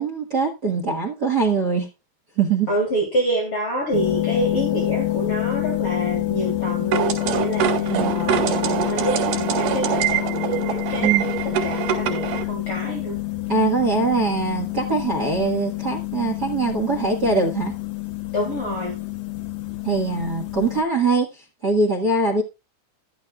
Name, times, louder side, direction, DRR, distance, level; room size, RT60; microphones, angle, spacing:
voice 1, 0.0-1.9 2.4-2.7 7.7-8.1 11.0-11.3 13.5-17.7 19.8-22.4, right 4 dB, 50° right, 1.2 m, -22 dB
voice 2, 2.7-13.2 18.3-19.0, right 1 dB, 40° left, 3.5 m, -27 dB
sound 1, 3.9-20.8, left 18 dB, 75° left, 2.6 m, -27 dB
sound 2, 6.9-12.4, right 9 dB, 90° right, 4.0 m, -24 dB
13.0 x 12.5 x 2.4 m
omnidirectional pair, 4.3 m